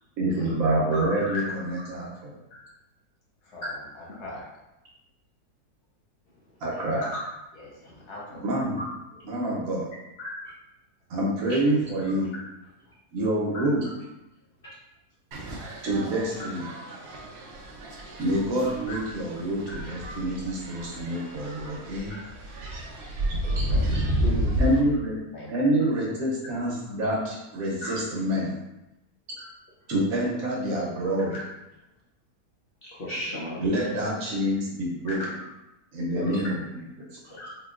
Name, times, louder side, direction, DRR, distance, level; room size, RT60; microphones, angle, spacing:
voice 1, 0.2-2.4 6.6-7.1 8.3-8.8 9.2-9.9 11.1-12.3 13.1-13.8 15.8-16.7 18.2-22.1 24.6-25.2 25.5-28.6 29.9-31.4 33.6-35.2 35.9-36.8 37.1-37.2, right 1 dB, 70° right, -4 dB, 1.1 m, -27 dB
voice 2, 0.9-1.4 2.5-2.6 3.5-4.5 7.0-7.1 7.5-8.6 9.1-9.3 10.2-10.3 13.5-13.6 18.6-19.0 20.0-20.2 23.4-24.0 25.3-25.5 27.8-27.9 29.4-29.5 31.3-31.4 35.0-35.1 36.2-36.3 37.4-37.5, left 2 dB, 80° left, -5 dB, 1.6 m, -39 dB
sound 1, 15.3-24.8, right 1 dB, 85° right, 0.5 m, -31 dB
voice 3, 24.2-24.6 32.9-33.6 36.1-36.4 37.2-37.5, left 1 dB, 60° left, -8 dB, 0.6 m, -34 dB
3.7 x 2.6 x 2.3 m, 0.92 s
omnidirectional pair, 1.7 m